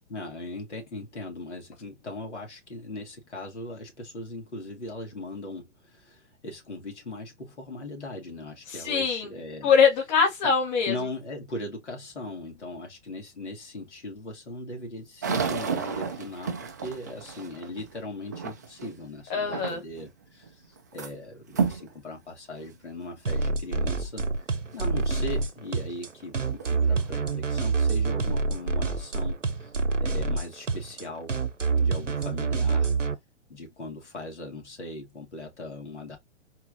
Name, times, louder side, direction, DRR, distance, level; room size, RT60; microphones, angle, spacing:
voice 1, 0.1-9.7 10.9-16.5 16.8-20.6 20.9-24.3 24.7-29.7 30.0-31.3 31.8-32.9 33.5-36.2, left 2 dB, 70° left, 2.6 m, -39 dB
voice 2, 8.7-9.3 9.6-11.1 19.3-19.8, left 6 dB, 35° left, 2.4 m, -23 dB
sound 1, 15.2-19.0 19.5-20.1 20.4-21.1 21.5-21.9 22.5-22.6 23.3-23.4 25.9-26.0 26.5-27.1, right 5 dB, 15° right, 0.3 m, -31 dB
sound 2, 23.3-33.1, right 4 dB, 90° right, 0.8 m, -26 dB
4.5 x 4.4 x 2.7 m
figure-of-eight pair, 115°, 36 cm